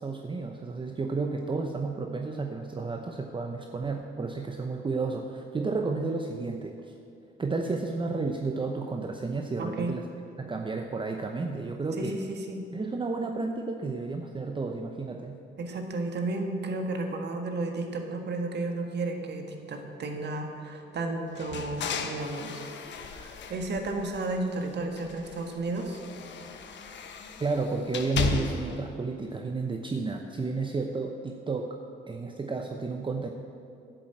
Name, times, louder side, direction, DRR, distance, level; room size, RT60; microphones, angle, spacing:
voice 1, 0.0-6.9 7.4-10.0 10.4-12.2 12.7-15.4 27.4-31.8 32.1-33.3, right 3 dB, 25° right, 3 dB, 0.8 m, -32 dB
voice 2, 9.6-9.9 12.0-12.6 15.6-22.7 23.1-26.0, right 2 dB, 60° right, 4 dB, 1.6 m, -33 dB
sound 1, 21.4-24.5 24.9-28.9, left 6 dB, 65° left, 1.1 m, -36 dB
11.0 x 7.7 x 8.0 m, 2.7 s
cardioid pair, 90°, 20 cm